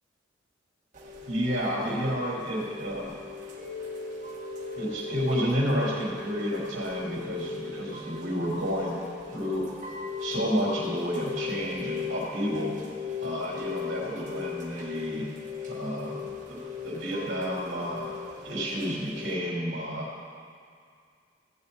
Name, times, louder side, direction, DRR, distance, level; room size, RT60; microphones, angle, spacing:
Chime / Rain, 0.9-19.3, left 5 dB, 40° right, 1.7 m, -38 dB
voice 1, 1.3-3.1 4.8-9.0 9.3-9.7 10.2-12.7 13.2-15.3 15.7-18.1 18.4-20.1, equal, 65° right, -4 dB, 3.5 m, -30 dB
16.0 x 8.3 x 4.1 m, 2.2 s
head